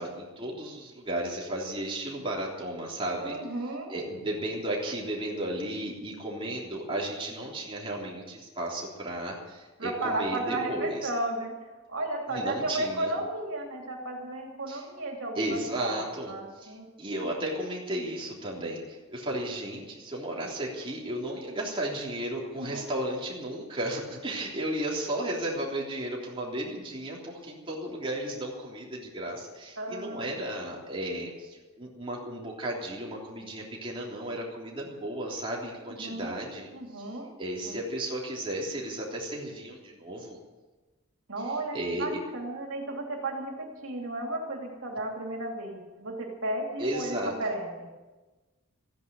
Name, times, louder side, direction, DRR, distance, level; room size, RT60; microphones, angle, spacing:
voice 1, 0.0-3.3 3.9-11.1 12.3-13.1 14.7-14.8 15.3-36.7 37.0-37.1 37.4-40.4 41.7-42.2 46.8-47.3, right 1 dB, 25° right, -3 dB, 3.4 m, -34 dB
voice 2, 3.2-3.9 9.8-11.6 11.9-16.0 16.3-16.9 22.6-22.8 29.8-30.2 36.0-36.4 36.7-37.3 37.6-37.8 41.3-47.9, right 2 dB, 70° right, 0 dB, 3.2 m, -34 dB
15.0 x 10.5 x 9.1 m, 1.2 s
head